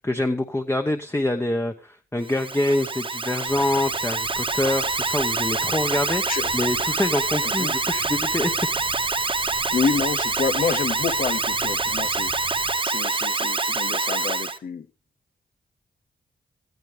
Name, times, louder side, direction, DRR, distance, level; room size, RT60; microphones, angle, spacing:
voice 1, 0.0-6.2 6.5-8.5, left 1 dB, 15° left, 6 dB, 1.0 m, -25 dB
Alarm, 2.2-14.6, right 3 dB, 30° right, 1.1 m, -26 dB
sound 1, 3.4-12.7, right 4 dB, 90° right, 2.2 m, -46 dB
voice 2, 7.4-7.7 9.7-14.9, left 5 dB, 65° left, 11 dB, 0.8 m, -28 dB
17.5 x 14.0 x 3.4 m, 0.34 s
cardioid pair, 65°, 16 cm